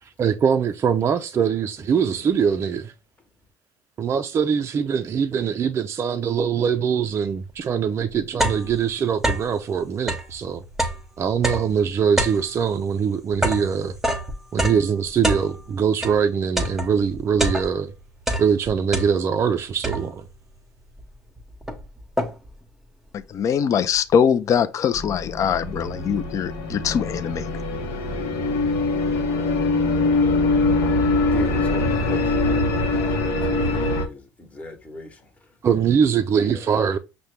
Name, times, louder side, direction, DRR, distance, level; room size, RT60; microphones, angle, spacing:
voice 1, 0.2-2.9 4.0-10.6 11.2-14.0 14.5-17.9 18.4-20.3 35.6-37.0, right 7 dB, 40° right, 0.3 m, -22 dB
sound 1, 7.5-7.6 8.0-9.6 10.0-16.2 16.6-17.9 18.2-19.5 19.8-20.4 21.0-21.1 21.4-22.6, right 1 dB, 5° right, 0.8 m, -27 dB
voice 2, 23.3-27.4, left 7 dB, 45° left, 0.4 m, -22 dB
sound 2, 24.9-34.1, left 2 dB, 90° left, 0.7 m, -23 dB
voice 3, 31.2-35.3 36.4-36.7, left 2 dB, 20° left, 1.0 m, -38 dB
5.5 x 2.1 x 3.1 m
supercardioid pair, 85°, 7 cm